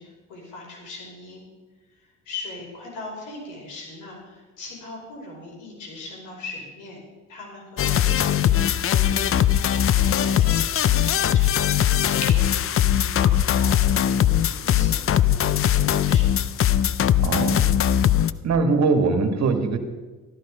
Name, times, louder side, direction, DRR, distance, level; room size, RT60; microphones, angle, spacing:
voice 1, 0.0-1.4 1.9-7.0 7.3-16.5, left 2 dB, 85° left, -2 dB, 5.4 m, -40 dB
sound 1, 7.8-18.3, left 10 dB, 45° left, 0.5 m, -20 dB
sound 2, 8.1-13.5, left 3 dB, 65° left, 2.8 m, -44 dB
voice 2, 17.2-17.6 18.4-19.8, right 4 dB, 60° right, 7 dB, 1.8 m, -21 dB
13.5 x 13.0 x 5.0 m, 1.3 s
cardioid pair, 90°, 30 cm